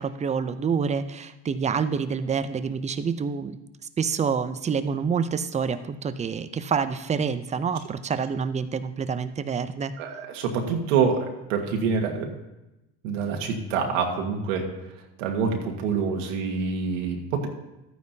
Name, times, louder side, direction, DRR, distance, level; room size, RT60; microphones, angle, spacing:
voice 1, 0.0-3.6 4.0-9.9, right 6 dB, 20° right, 12 dB, 0.5 m, -27 dB
voice 2, 10.0-12.3 13.0-14.7 15.2-17.5, right 5 dB, 90° right, 2 dB, 1.6 m, -26 dB
13.0 x 9.4 x 2.8 m, 0.96 s
supercardioid pair, 105°, 37 cm